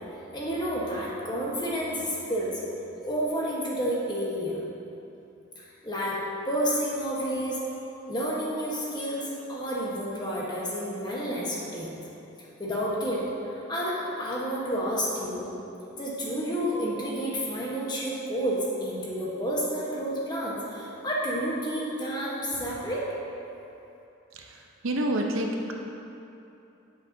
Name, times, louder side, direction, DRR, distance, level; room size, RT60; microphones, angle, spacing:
voice 1, 0.3-2.6 3.0-4.6 5.6-6.2 6.5-7.6 8.1-11.9 12.6-15.4 16.0-23.0, equal, 20° left, -5 dB, 1.1 m, -30 dB
voice 2, 24.3-25.7, right 1 dB, 75° right, 1 dB, 0.7 m, -29 dB
8.4 x 7.9 x 2.7 m, 2.8 s
head